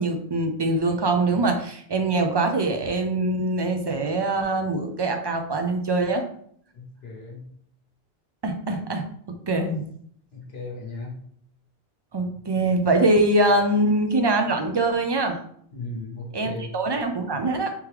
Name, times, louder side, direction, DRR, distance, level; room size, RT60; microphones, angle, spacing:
voice 1, 0.0-6.3 8.4-9.1 9.5-9.8 12.1-15.4 16.3-17.7, right 2 dB, 45° right, 5 dB, 0.3 m, -23 dB
voice 2, 6.7-7.5 10.3-11.2 15.7-16.7, left 2 dB, 80° left, -1 dB, 1.1 m, -36 dB
3.5 x 3.0 x 3.3 m, 0.63 s
omnidirectional pair, 1.0 m